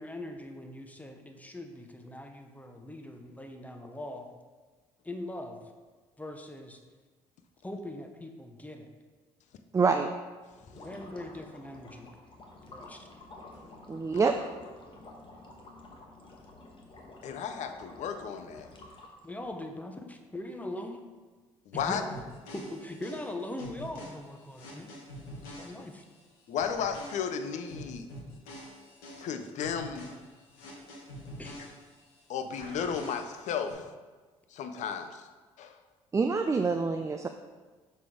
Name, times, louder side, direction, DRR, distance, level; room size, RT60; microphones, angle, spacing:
voice 1, 0.0-4.3 5.0-5.6 6.2-6.8 7.6-8.9 10.8-12.1 12.7-13.1 19.2-21.0 21.7-22.2 22.5-24.9 25.6-26.0 31.4-31.5, left 1 dB, 10° left, 5 dB, 0.8 m, -41 dB
voice 2, 9.7-10.1 13.9-14.4 36.1-37.3, right 4 dB, 20° right, 6 dB, 0.4 m, -26 dB
sound 1, 10.5-19.5, left 2 dB, 40° left, 1.1 m, -50 dB
voice 3, 17.2-18.7 21.7-22.0 26.5-28.1 29.2-30.1 32.3-33.8 34.5-35.3 35.6-35.7, left 7 dB, 60° left, 8 dB, 0.5 m, -34 dB
sound 2, 21.7-26.2 26.6-32.2 32.6-33.7, equal, 80° left, 1.1 m, -46 dB
6.4 x 4.0 x 3.7 m, 1.3 s
hypercardioid pair, 55°, 14 cm